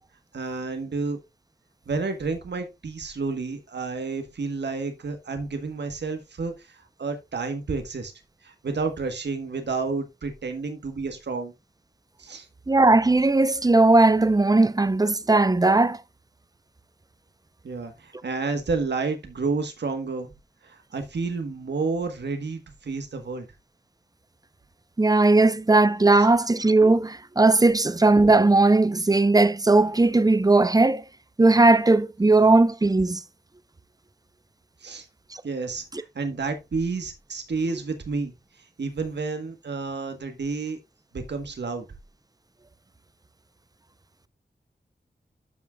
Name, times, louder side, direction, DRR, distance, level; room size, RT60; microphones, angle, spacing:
voice 1, 0.3-1.2 1.9-8.1 8.4-11.5 12.2-12.5 17.6-20.3 20.6-23.5 34.8-35.1 35.4-38.3 38.8-40.8 41.1-41.8, right 4 dB, 80° right, 1.3 m, -30 dB
voice 2, 12.7-16.0 25.0-31.0 31.4-33.2, right 2 dB, 20° right, 0.6 m, -18 dB
12.5 x 6.1 x 2.3 m
wide cardioid pair, 75°, 18 cm